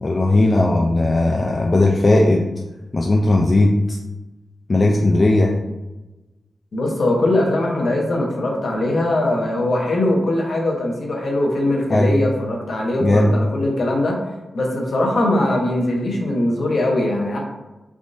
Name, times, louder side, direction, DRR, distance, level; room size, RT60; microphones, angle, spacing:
voice 1, 0.0-2.4 2.9-4.0 4.7-5.5 11.9-12.1 13.0-13.3, left 2 dB, 40° left, -1 dB, 0.3 m, -17 dB
voice 2, 6.7-14.2 14.5-17.4, left 1 dB, 65° left, -1 dB, 0.8 m, -21 dB
3.5 x 2.5 x 2.5 m, 1.1 s
wide cardioid pair, 85°, 0 cm